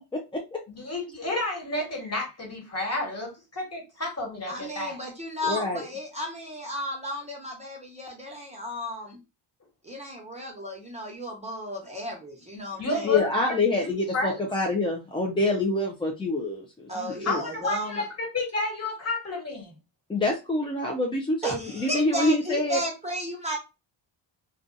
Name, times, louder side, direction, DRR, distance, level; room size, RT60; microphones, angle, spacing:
voice 1, 0.7-5.0 12.8-13.3 13.7-14.4 17.2-19.7, left 2 dB, 30° left, 1.5 m, -31 dB
voice 2, 4.5-9.2 9.8-13.2 16.9-18.0 21.4-23.6, equal, 15° right, 0.9 m, -34 dB
voice 3, 5.4-5.8 13.0-17.4 20.1-22.8, left 2 dB, 10° left, 0.3 m, -26 dB
2.5 x 2.3 x 2.5 m
cardioid pair, 80°, 48 cm